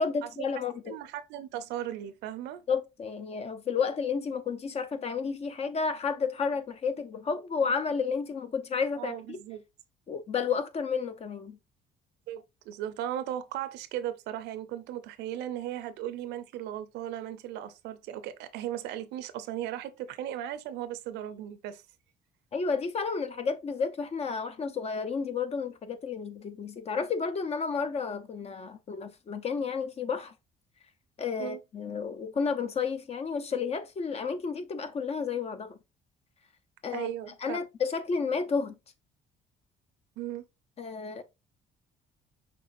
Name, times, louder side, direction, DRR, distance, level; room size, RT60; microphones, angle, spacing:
voice 1, 0.0-0.9 2.7-9.4 10.1-11.6 22.5-30.3 31.2-35.8 36.8-37.1 37.4-38.8 40.8-41.2, left 5 dB, 40° left, 0.7 m, -31 dB
voice 2, 0.8-2.6 9.0-9.6 12.3-21.8 31.4-31.6 36.9-37.6 40.2-40.4, right 11 dB, 85° right, 0.6 m, -37 dB
6.0 x 3.3 x 2.5 m
cardioid pair, 110°, 17 cm